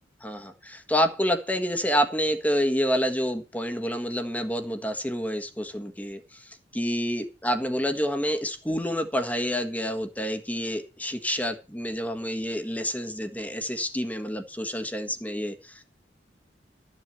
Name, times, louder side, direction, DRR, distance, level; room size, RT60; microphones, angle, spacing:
voice 1, 0.2-15.8, equal, 10° left, 7 dB, 1.5 m, -28 dB
13.0 x 7.6 x 6.8 m, 0.31 s
head